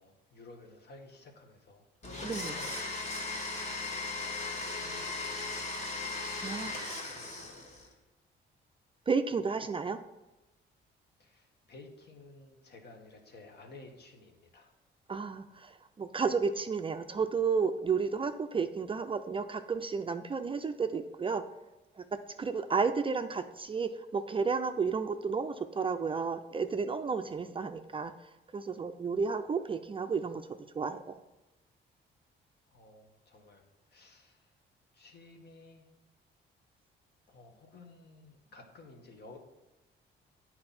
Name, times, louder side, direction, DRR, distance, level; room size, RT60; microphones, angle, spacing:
voice 1, 0.0-5.9 6.6-7.9 11.2-14.7 32.7-33.6 33.9-34.5 34.9-35.9 37.3-39.4, left 3 dB, 55° left, 3 dB, 1.4 m, -54 dB
Domestic sounds home sounds, 2.0-7.9, left 3 dB, 35° left, 1.4 m, -37 dB
voice 2, 2.2-2.6 6.4-7.0 9.1-10.0 15.1-15.7 16.0-21.4 22.4-28.1 28.5-30.4 30.8-31.0, right 5 dB, 25° right, 8 dB, 0.4 m, -32 dB
8.6 x 4.4 x 4.2 m, 1.0 s
cardioid pair, 90°, 20 cm